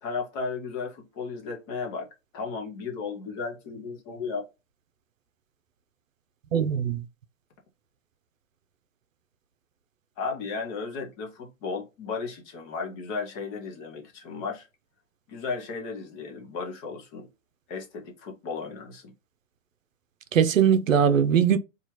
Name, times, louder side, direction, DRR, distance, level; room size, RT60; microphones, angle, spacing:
voice 1, 0.0-2.1 2.3-4.4 10.2-14.7 15.3-17.3 17.7-19.1, left 4 dB, 20° left, 0.6 m, -34 dB
voice 2, 6.5-7.0 20.3-21.6, right 8 dB, 75° right, 0.6 m, -21 dB
4.2 x 2.4 x 2.9 m
hypercardioid pair, 130°, 39 cm